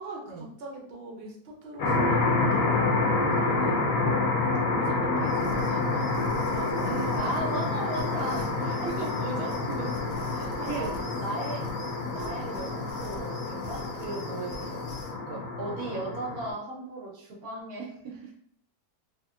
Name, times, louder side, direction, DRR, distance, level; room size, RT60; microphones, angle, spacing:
voice 1, 0.0-4.1 4.6-7.4 8.6-11.6, right 2 dB, 50° right, -2 dB, 0.8 m, -41 dB
Big Reverb Laser, 1.8-16.5, left 3 dB, 60° left, 1.0 m, -28 dB
sound 1, 5.2-15.2, left 3 dB, 85° left, 1.2 m, -45 dB
voice 2, 6.8-8.7 10.3-10.9 11.1-11.6 12.1-14.8 15.3-17.9, right 2 dB, 70° right, -2 dB, 1.1 m, -36 dB
3.0 x 2.7 x 2.4 m, 0.65 s
omnidirectional pair, 1.8 m